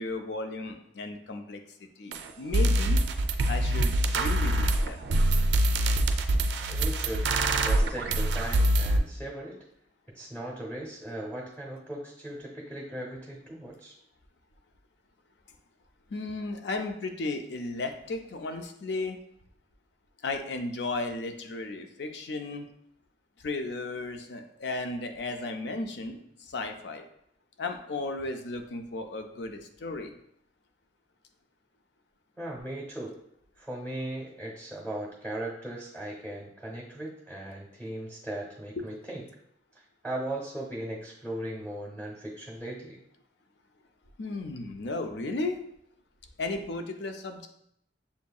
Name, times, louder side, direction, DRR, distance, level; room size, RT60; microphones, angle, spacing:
voice 1, 0.0-1.6 2.0-3.0 3.5-5.1 16.1-19.2 20.2-22.7 23.4-27.1 27.6-30.1 44.2-45.6 46.4-47.5, left 2 dB, 70° left, 6 dB, 0.5 m, -34 dB
sound 1, 2.1-2.2 2.5-9.0, right 1 dB, 70° right, 0.4 m, -24 dB
voice 2, 6.7-9.6 10.1-13.9 32.4-33.1 33.6-39.2 40.0-43.0, right 1 dB, 5° left, -4 dB, 0.8 m, -38 dB
6.9 x 2.7 x 2.3 m, 0.71 s
head